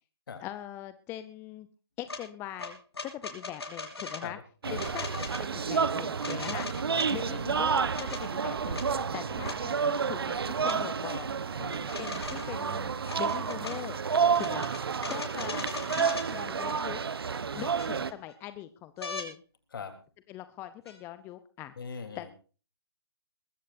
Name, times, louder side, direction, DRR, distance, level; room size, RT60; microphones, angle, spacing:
voice 1, 0.4-1.7 2.0-4.4 4.7-5.1 5.4-6.7 7.1-8.9 9.1-11.6 11.9-12.9 13.2-14.0 14.4-14.6 15.1-17.0 17.5-19.4 20.3-21.7 22.2-22.3, left 13 dB, 15° left, 12 dB, 0.7 m, -41 dB
sound 1, 2.1-2.2 2.6-4.2 4.8-5.4 6.2-7.1 7.7-8.2 8.7-8.9 9.4-9.6 10.6-10.8 11.7-12.6 13.0-13.8 14.3-16.3 17.3-17.4 17.8-18.3 19.0-19.3 20.9-21.0, left 3 dB, 80° left, 5.9 m, -39 dB
voice 2, 4.2-5.1 6.5-7.4 8.9-9.4 11.6-11.9 14.2-14.6 17.5-18.0 19.7-19.9 21.8-22.3, left 5 dB, 60° left, 7 dB, 3.6 m, -43 dB
sound 2, 4.6-18.1, right 6 dB, 70° right, 1.1 m, -30 dB
sound 3, 6.9-17.0, right 9 dB, 45° right, 1.2 m, -45 dB
21.5 x 15.0 x 2.7 m, 0.37 s
figure-of-eight pair, 140°, 13 cm